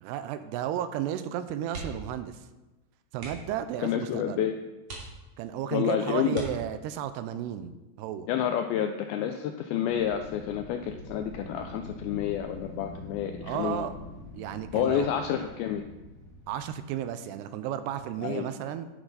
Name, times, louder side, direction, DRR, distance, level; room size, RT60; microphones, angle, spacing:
voice 1, 0.0-2.4 3.1-4.4 5.4-8.3 13.4-13.9 14.3-15.1 16.5-18.9, right 10 dB, 80° right, 11 dB, 2.6 m, -33 dB
sound 1, 1.7-2.2 2.5-2.7 3.1-3.6 4.2-4.3 4.8-5.6 6.3-7.1 8.6-9.0 9.3-9.4, right 3 dB, 45° right, 3.4 m, -41 dB
voice 2, 3.8-4.6 5.7-6.4 8.3-13.9 14.7-15.8 18.2-18.5, left 9 dB, 85° left, 6 dB, 2.1 m, -29 dB
Wind, 9.9-16.8, left 1 dB, 60° left, 4.7 m, -45 dB
11.0 x 9.9 x 4.0 m, 1.1 s
omnidirectional pair, 4.9 m